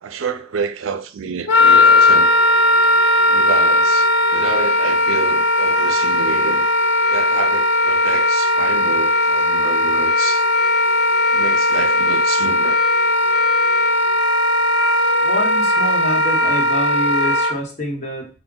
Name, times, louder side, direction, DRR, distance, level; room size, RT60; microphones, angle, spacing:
voice 1, 0.0-2.3 3.3-6.7 7.1-10.4 11.3-12.8, right 6 dB, 90° right, 0.4 m, -28 dB
Wind instrument woodwind instrument, 1.5-17.5, left 1 dB, 70° left, 0.5 m, -17 dB
voice 2, 15.2-18.3, equal, 35° left, 1.0 m, -26 dB
4.5 x 2.2 x 3.8 m
head